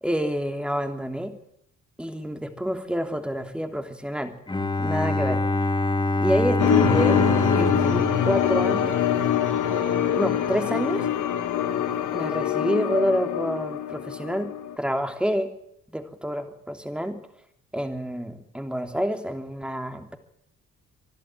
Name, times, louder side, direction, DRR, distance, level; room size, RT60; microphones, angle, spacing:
voice 1, 0.0-1.3 2.0-4.3 4.8-5.4 6.2-7.2 7.5-9.0 9.7-11.0 12.1-14.5 14.8-15.5 15.9-17.2 17.7-20.2, equal, 5° right, 6 dB, 3.0 m, -28 dB
Bowed string instrument, 4.5-9.4, left 2 dB, 15° left, 3.7 m, -25 dB
sound 1, 6.6-14.8, left 10 dB, 80° left, 1.9 m, -24 dB
25.0 x 12.0 x 9.2 m, 0.74 s
cardioid pair, 90°, 30 cm